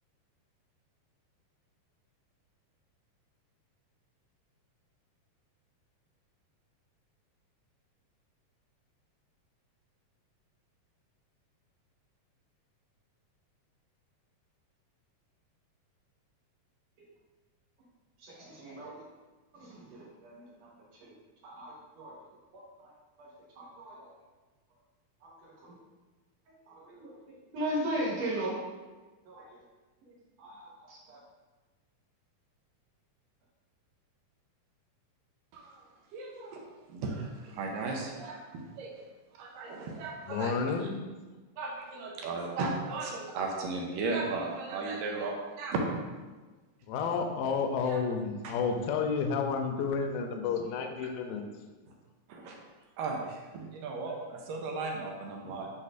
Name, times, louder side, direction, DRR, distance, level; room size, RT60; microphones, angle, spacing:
voice 1, 18.2-19.0 19.5-20.5 21.0-21.1 21.4-22.1 22.5-22.9 23.2-23.3 23.6-24.1 25.4-25.7 26.7-27.1 27.5-28.6 29.3-29.6 30.4-31.2, right 1 dB, 60° right, -4 dB, 2.0 m, -37 dB
voice 2, 35.5-35.8 36.1-36.6 36.9-38.9 39.4-40.9 41.6-45.8 47.8-48.0 48.4-48.5 52.3-52.6 53.0-55.7, right 3 dB, 80° right, 0 dB, 2.3 m, -36 dB
voice 3, 40.3-41.0 46.9-51.4, left 5 dB, 80° left, 4 dB, 2.2 m, -31 dB
9.8 x 4.2 x 2.5 m, 1.3 s
omnidirectional pair, 4.0 m